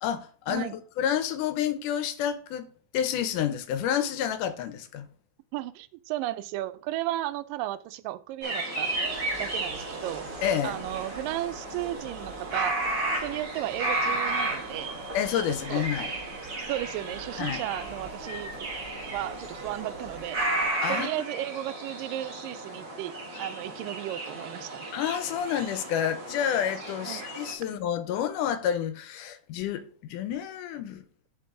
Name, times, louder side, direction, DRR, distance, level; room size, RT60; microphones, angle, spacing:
voice 1, 0.0-0.7 1.0-2.7 2.9-5.1 10.4-10.8 15.1-16.1 17.4-17.6 20.8-21.1 24.9-31.0, left 9 dB, 80° left, 2.2 m, -29 dB
voice 2, 5.5-8.9 9.4-10.3 10.6-12.8 13.2-15.0 15.7-15.9 16.7-18.5 19.1-20.4 20.9-24.9 27.1-27.2, right 15 dB, 90° right, 2.2 m, -34 dB
sound 1, 8.4-27.5, right 2 dB, 30° right, 2.3 m, -34 dB
sound 2, 8.8-20.7, right 3 dB, 55° right, 1.2 m, -44 dB
10.5 x 4.6 x 3.7 m
omnidirectional pair, 3.8 m